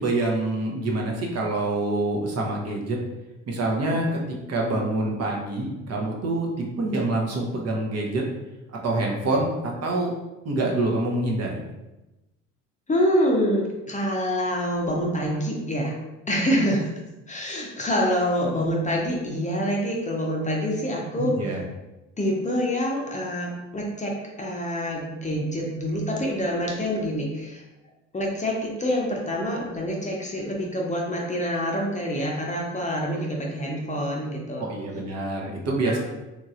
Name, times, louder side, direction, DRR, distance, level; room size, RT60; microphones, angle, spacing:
voice 1, 0.0-3.0 3.5-8.2 8.7-10.1 10.4-11.6 21.2-21.6 34.6-36.0, right 2 dB, 45° right, -1 dB, 0.8 m, -26 dB
voice 2, 12.9-15.9 16.3-16.8 17.3-21.5 22.2-27.6 28.1-34.6 35.8-36.0, equal, 20° left, -1 dB, 0.7 m, -26 dB
3.1 x 2.6 x 2.4 m, 1.0 s
hypercardioid pair, 60°, 37 cm